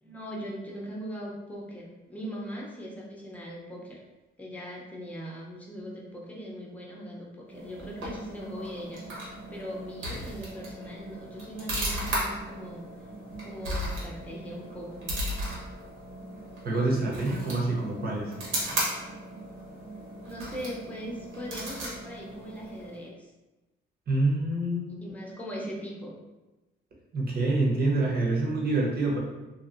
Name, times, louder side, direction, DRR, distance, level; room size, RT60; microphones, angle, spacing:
voice 1, 0.0-4.0 4.4-12.8 13.4-15.1 20.2-23.3 25.0-26.1, equal, 5° left, -4 dB, 0.8 m, -40 dB
sound 1, 7.5-23.1, right 1 dB, 85° right, 1.2 m, -36 dB
voice 2, 16.6-18.3 24.1-25.1 27.1-29.2, right 2 dB, 50° right, -3 dB, 1.0 m, -26 dB
2.8 x 2.8 x 2.6 m, 1.1 s
cardioid pair, 90°, 20 cm